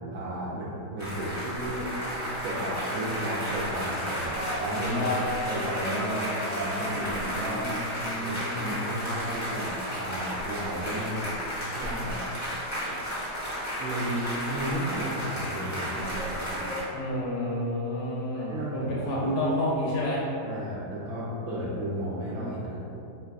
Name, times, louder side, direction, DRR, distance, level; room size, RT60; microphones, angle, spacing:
voice 1, 0.0-1.9 2.4-5.1 5.5-7.7 8.2-11.3 11.7-12.2 13.6-14.2 14.5-16.7 18.3-19.2 20.4-22.8, right 1 dB, 70° right, -7 dB, 0.9 m, -33 dB
sound 1, 1.0-16.8, equal, 25° left, 0.3 m, -33 dB
voice 2, 7.4-9.0 16.9-20.2, left 1 dB, 80° left, -5 dB, 1.3 m, -30 dB
4.6 x 3.2 x 2.3 m, 2.7 s
omnidirectional pair, 1.8 m